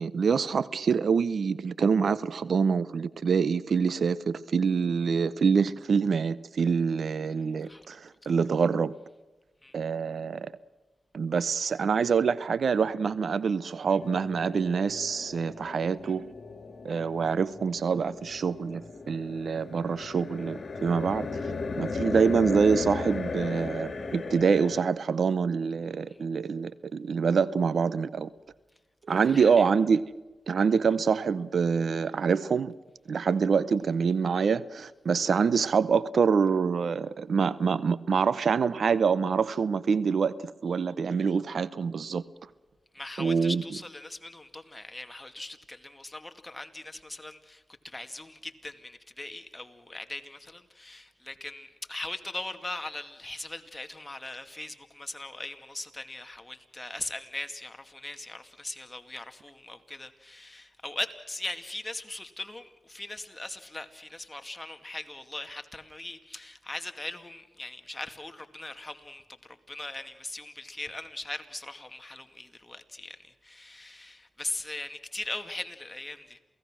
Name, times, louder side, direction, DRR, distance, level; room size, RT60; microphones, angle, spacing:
voice 1, 0.0-8.9 9.7-10.5 11.1-16.3 16.8-21.5 21.8-28.3 29.1-30.0 30.5-32.7 33.1-42.2 43.2-43.6, right 5 dB, 75° right, 0.7 m, -26 dB
voice 2, 7.3-7.9 8.2-8.3 9.6-9.8 26.1-26.2 29.1-29.7 42.9-76.4, left 2 dB, 20° left, 2.3 m, -40 dB
sound 1, 14.0-24.8, left 4 dB, 60° left, 2.6 m, -36 dB
28.0 x 17.5 x 6.3 m
cardioid pair, 45°, 0 cm